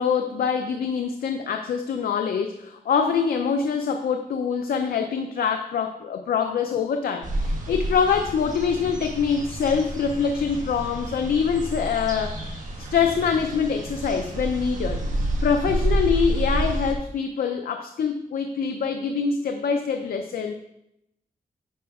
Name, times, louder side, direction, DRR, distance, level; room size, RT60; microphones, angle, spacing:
voice 1, 0.0-12.4 12.9-15.0 15.4-20.5, left 6 dB, 80° left, 5 dB, 0.5 m, -24 dB
sound 1, 7.2-16.9, right 1 dB, 55° right, 1.5 m, -29 dB
9.3 x 5.1 x 3.6 m, 0.81 s
wide cardioid pair, 155°, 15 cm